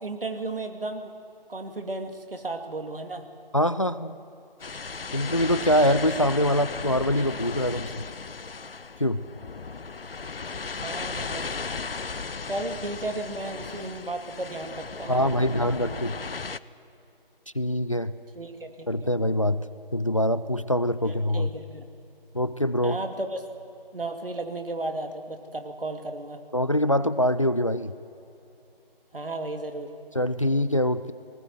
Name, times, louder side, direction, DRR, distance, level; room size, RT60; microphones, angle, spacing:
voice 1, 0.0-1.1 1.5-3.2 10.8-11.5 12.5-16.0 18.3-19.1 21.0-21.9 22.8-23.4 23.9-26.4 29.1-29.9, right 2 dB, 65° right, 6 dB, 2.6 m, -34 dB
voice 2, 3.5-4.2 5.1-8.1 9.0-9.2 15.1-16.2 17.5-18.1 18.9-19.6 19.9-21.5 22.3-23.0 26.5-27.9 30.1-31.1, equal, 35° left, 14 dB, 0.4 m, -24 dB
sound 1, 4.6-16.6, left 4 dB, 75° left, 0.8 m, -36 dB
19.5 x 19.0 x 9.4 m, 2.8 s
figure-of-eight pair, 160°, 29 cm